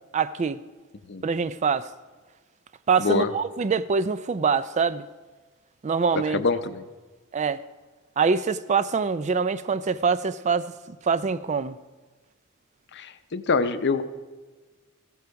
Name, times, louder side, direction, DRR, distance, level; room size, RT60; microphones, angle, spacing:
voice 1, 0.1-0.6 1.2-1.9 2.9-5.1 5.8-6.4 7.3-7.6 8.2-11.8, right 5 dB, 35° right, 0.4 m, -24 dB
voice 2, 6.3-6.8 12.9-14.0, left 4 dB, 55° left, 0.7 m, -25 dB
15.0 x 12.0 x 4.7 m
head